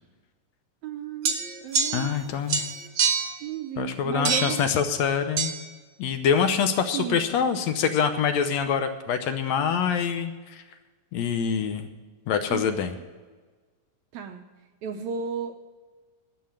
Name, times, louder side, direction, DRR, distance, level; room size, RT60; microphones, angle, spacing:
voice 1, 0.8-1.4 1.6-2.2 3.4-4.7 6.9-7.3 12.5-12.8 14.1-14.4 14.8-15.5, right 7 dB, 75° right, 6 dB, 1.7 m, -33 dB
sound 1, 1.2-2.2 2.5-3.4 4.2-4.6 5.4-5.5, right 6 dB, 60° right, 1.5 m, -26 dB
voice 2, 1.9-2.6 3.8-5.5 6.0-10.6 11.1-11.9 12.3-12.9, left 7 dB, 75° left, 8 dB, 1.7 m, -25 dB
11.5 x 8.1 x 8.5 m, 1.4 s
omnidirectional pair, 3.9 m